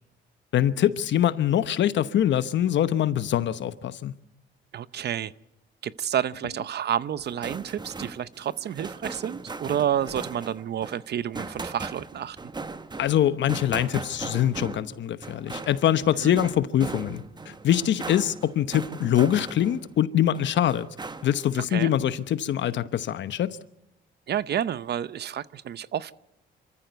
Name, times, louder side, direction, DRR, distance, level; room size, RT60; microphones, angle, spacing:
voice 1, 0.5-4.1 13.0-20.9 21.2-23.6, left 11 dB, 65° left, 1.0 m, -24 dB
voice 2, 4.7-5.3 5.8-12.4 16.2-16.4 21.7-21.9 24.3-26.1, right 10 dB, 55° right, 0.7 m, -29 dB
sound 1, 7.2-20.0 20.3-21.5, right 3 dB, 20° right, 1.1 m, -39 dB
26.0 x 14.5 x 8.0 m
cardioid pair, 90°, 20 cm